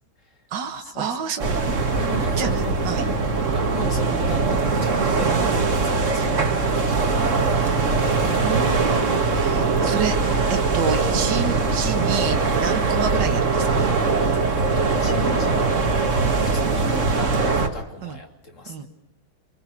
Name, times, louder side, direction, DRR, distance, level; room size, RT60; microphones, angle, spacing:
voice 1, 0.5-1.8 2.4-3.0 5.2-5.4 8.1-13.8 18.0-18.2 18.7-18.9, right 7 dB, 55° right, 4 dB, 2.2 m, -29 dB
sound 1, 1.4-17.7, right 4 dB, 35° right, 2.1 m, -21 dB
voice 2, 2.0-3.2 3.5-7.5 14.5-15.8 16.1-18.9, left 3 dB, 35° left, 5 dB, 3.1 m, -37 dB
25.5 x 23.5 x 6.1 m, 0.82 s
omnidirectional pair, 2.3 m